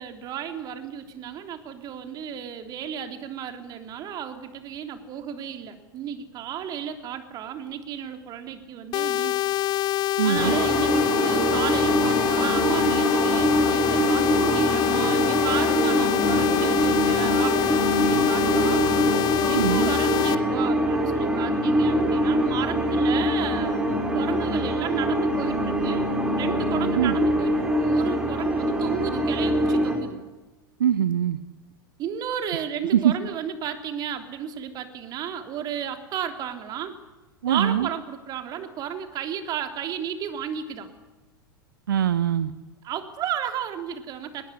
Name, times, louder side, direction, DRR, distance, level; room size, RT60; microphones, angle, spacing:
voice 1, 0.0-9.4 10.2-18.8 19.2-30.2 32.0-37.0 37.4-40.9 42.8-44.5, right 8 dB, 35° right, 7 dB, 3.3 m, -33 dB
sound 1, 8.9-20.3, left 16 dB, 35° left, 1.3 m, -25 dB
voice 2, 10.2-10.6 19.5-19.9 27.0-27.1 30.8-31.4 32.9-33.1 37.4-37.9 41.9-42.5, right 10 dB, 65° right, 16 dB, 0.9 m, -22 dB
sound 2, 10.3-30.0, right 1 dB, 5° right, 5.7 m, -24 dB
23.0 x 20.5 x 10.0 m, 1.1 s
figure-of-eight pair, 90°, 12 cm